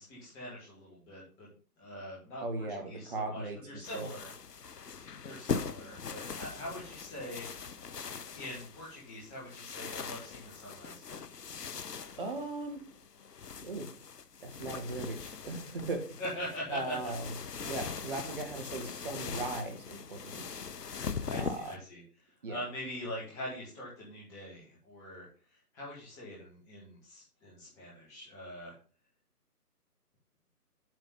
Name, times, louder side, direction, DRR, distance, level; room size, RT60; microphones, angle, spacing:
voice 1, 0.0-1.5 1.8-4.3 5.2-7.5 8.3-11.2 16.2-17.1 21.2-22.0 22.5-25.3 25.7-28.7, left 1 dB, 5° left, -6 dB, 1.4 m, -43 dB
voice 2, 2.4-4.1 12.2-12.8 13.6-13.9 14.4-16.2 16.7-17.3 17.6-20.5 21.3-21.8 22.4-22.6, right 3 dB, 35° right, 4 dB, 1.7 m, -38 dB
sound 1, 3.8-21.8, left 6 dB, 80° left, 0.8 m, -41 dB
7.9 x 4.1 x 5.5 m, 0.40 s
figure-of-eight pair, 155°, 47 cm